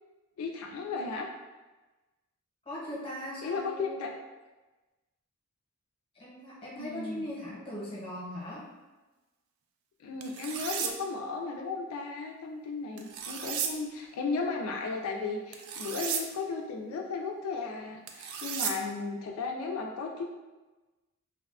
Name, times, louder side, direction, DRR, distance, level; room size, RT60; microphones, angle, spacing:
voice 1, 0.4-1.3 3.4-4.1 6.7-7.3 10.0-20.2, left 4 dB, 90° left, 6 dB, 0.3 m, -35 dB
voice 2, 2.6-4.0 6.1-8.6, left 1 dB, 25° left, -6 dB, 0.8 m, -39 dB
sound 1, 10.2-10.9 13.0-13.7 15.5-16.2 18.1-18.7, right 7 dB, 80° right, 0.3 m, -34 dB
2.7 x 2.2 x 2.3 m, 1.2 s
head